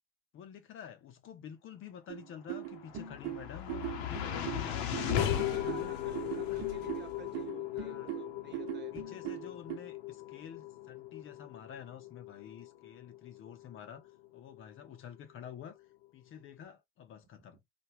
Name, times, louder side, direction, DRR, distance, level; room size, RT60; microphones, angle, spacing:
voice 1, 0.3-4.8 5.3-6.0 6.5-6.6 7.8-8.1 8.9-15.8 16.1-17.6, left 8 dB, 40° left, 0.7 m, -49 dB
sound 1, 2.1-9.8, right 12 dB, 55° right, 1.1 m, -40 dB
sound 2, 2.6-14.9, left 11 dB, 75° left, 0.8 m, -38 dB
voice 2, 4.1-9.1 17.5-17.6, right 9 dB, 35° right, 1.1 m, -51 dB
3.4 x 2.3 x 2.9 m
hypercardioid pair, 90°, 32 cm